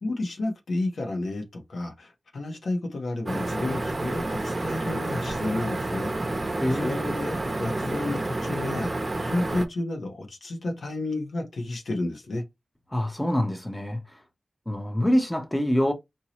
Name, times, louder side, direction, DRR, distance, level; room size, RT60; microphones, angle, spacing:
voice 1, 0.0-6.1 6.4-8.9 9.2-12.4, left 2 dB, 85° left, 1.2 m, -31 dB
sound 1, 3.3-9.7, right 2 dB, 35° right, 0.7 m, -29 dB
voice 2, 6.6-6.9 12.9-14.0 14.7-15.9, equal, 15° left, 0.9 m, -25 dB
4.7 x 2.8 x 3.0 m
wide cardioid pair, 85°, 0 cm